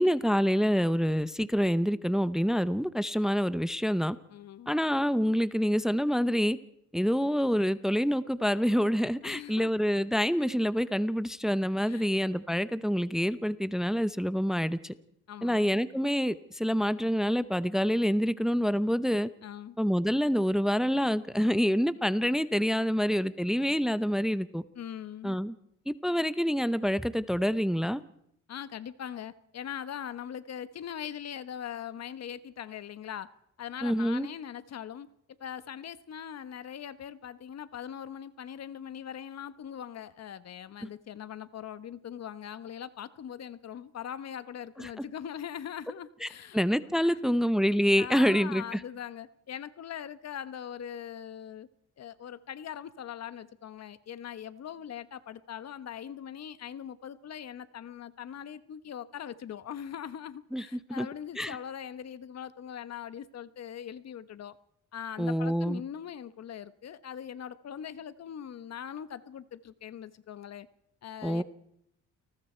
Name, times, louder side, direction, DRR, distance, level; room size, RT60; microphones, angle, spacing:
voice 1, 0.0-4.2 4.7-6.6 6.9-14.9 15.4-19.3 19.8-24.6 25.2-25.5 25.9-28.0 33.8-34.3 40.8-40.9 44.8-44.9 46.2-46.3 46.5-48.8 60.5-61.1 61.4-61.6 65.2-65.8 71.2-71.4, equal, ahead, 15 dB, 0.8 m, -27 dB
voice 2, 4.3-4.7 9.2-9.9 11.9-12.1 15.3-15.8 19.4-19.8 24.7-25.4 28.5-33.3 33.6-35.1 35.4-46.6 47.0-47.4 47.9-51.7 52.0-64.6 64.9-70.7 71.0-71.4, left 9 dB, 60° left, 14 dB, 1.2 m, -41 dB
29.5 x 19.5 x 4.5 m, 0.73 s
cardioid pair, 90°, 30 cm